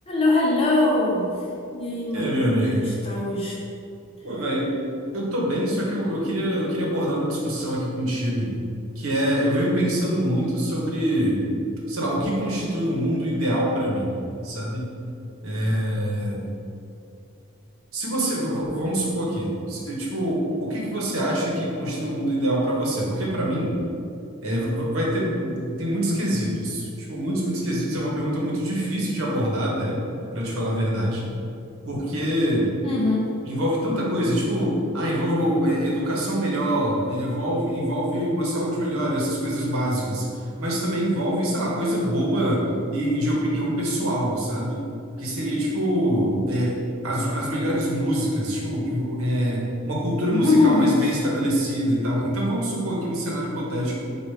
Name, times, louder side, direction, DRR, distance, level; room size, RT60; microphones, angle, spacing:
voice 1, 0.1-1.3 1.7-3.6 32.8-33.2 50.3-51.1, left 2 dB, 25° left, -4 dB, 0.7 m, -22 dB
voice 2, 2.1-2.8 4.2-4.8 5.1-8.5 9.0-11.4 11.9-14.1 14.4-14.9 15.4-16.5 17.9-23.7 24.4-30.0 30.3-31.2 31.8-32.7 33.4-40.3 40.6-42.6 42.9-44.9 45.2-46.8 47.0-53.9, equal, 70° right, -4 dB, 1.0 m, -25 dB
4.6 x 2.4 x 4.8 m, 2.5 s
head